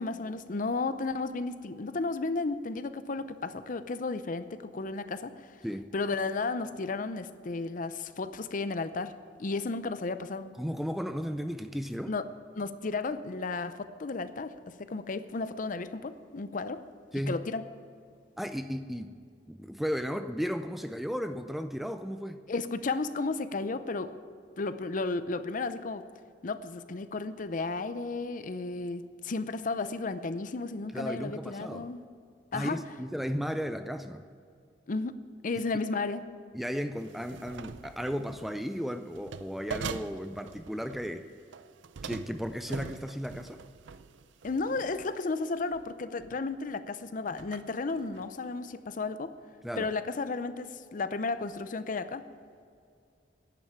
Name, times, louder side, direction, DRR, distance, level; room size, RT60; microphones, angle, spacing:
voice 1, 0.0-5.5 5.9-10.5 12.1-12.2 12.5-16.8 17.3-17.6 22.5-24.1 24.6-26.0 26.4-32.0 32.5-32.8 34.9-35.2 35.4-36.2 44.4-49.3 49.8-52.2, left 3 dB, 45° left, 12 dB, 0.6 m, -33 dB
voice 2, 10.6-12.2 17.1-17.4 18.4-19.2 19.5-22.4 30.9-31.9 32.5-34.3 36.5-41.3 42.0-43.6 49.6-49.9, equal, ahead, 9 dB, 0.4 m, -35 dB
sound 1, 37.0-38.5 39.1-41.1 41.5-45.2 45.7-45.9 46.2-46.7 47.3-48.3, right 5 dB, 80° right, 0.5 m, -43 dB
11.0 x 9.0 x 8.9 m, 2.3 s
head